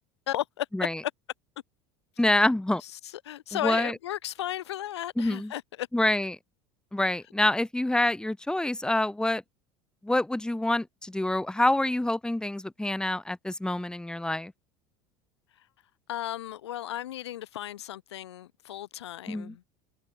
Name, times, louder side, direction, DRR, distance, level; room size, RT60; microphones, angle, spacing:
voice 1, 0.3-0.9 2.4-2.5 2.8-5.9 15.6-15.7 16.1-19.6, left 13 dB, 85° left, 7.5 m, -35 dB
voice 2, 2.2-2.8 3.6-3.9 5.2-5.5 5.9-6.4 6.9-9.4 10.0-14.5 19.3-19.5, left 1 dB, 5° left, 2.7 m, -26 dB
hypercardioid pair, 85°, 14 cm